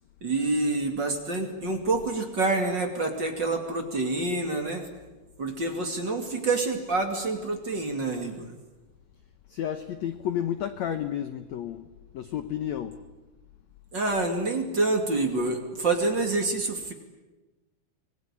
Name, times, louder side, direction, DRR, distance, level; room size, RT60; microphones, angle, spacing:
voice 1, 0.2-4.8 5.4-8.5 13.9-16.9, right 3 dB, 30° right, 4 dB, 2.6 m, -27 dB
voice 2, 9.5-11.9 12.1-13.0, left 10 dB, 75° left, 10 dB, 1.6 m, -31 dB
26.0 x 21.0 x 10.0 m, 1.1 s
omnidirectional pair, 4.5 m